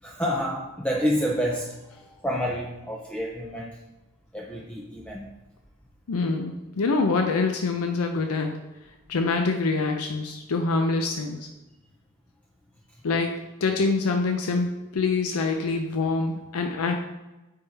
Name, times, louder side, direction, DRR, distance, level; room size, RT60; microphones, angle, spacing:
voice 1, 0.0-3.8 4.3-5.2, equal, 5° left, -1 dB, 0.5 m, -29 dB
voice 2, 6.1-8.6 9.1-11.4 13.0-13.3 13.6-16.9, left 3 dB, 85° left, 4 dB, 0.5 m, -25 dB
8.6 x 3.6 x 3.4 m, 1.0 s
head